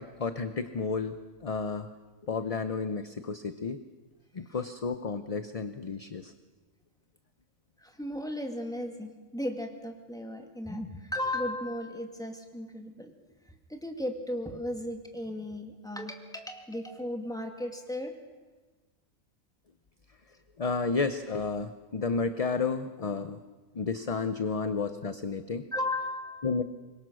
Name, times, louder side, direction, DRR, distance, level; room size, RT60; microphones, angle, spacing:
voice 1, 0.0-1.9 2.2-3.8 4.3-6.3 20.6-23.4 23.7-25.7 26.4-26.6, left 4 dB, 35° left, 10 dB, 0.7 m, -32 dB
voice 2, 7.8-13.1 13.4-18.1 25.7-26.5, left 1 dB, 5° left, 3 dB, 2.2 m, -35 dB
25.5 x 22.0 x 6.4 m, 1.3 s
omnidirectional pair, 1.4 m